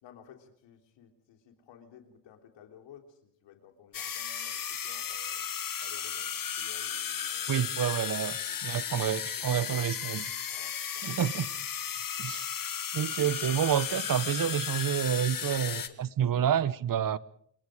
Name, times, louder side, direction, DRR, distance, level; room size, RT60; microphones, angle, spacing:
voice 1, 0.0-5.5 5.8-7.8 8.3-9.6 10.5-11.1 15.4-16.7, left 8 dB, 75° left, 3.6 m, -55 dB
sound 1, 3.9-15.9, left 8 dB, 50° left, 2.0 m, -35 dB
voice 2, 7.5-10.3 11.0-11.5 12.2-12.4 12.9-17.2, right 9 dB, 50° right, 1.1 m, -29 dB
27.5 x 21.5 x 5.1 m
supercardioid pair, 65°, 43 cm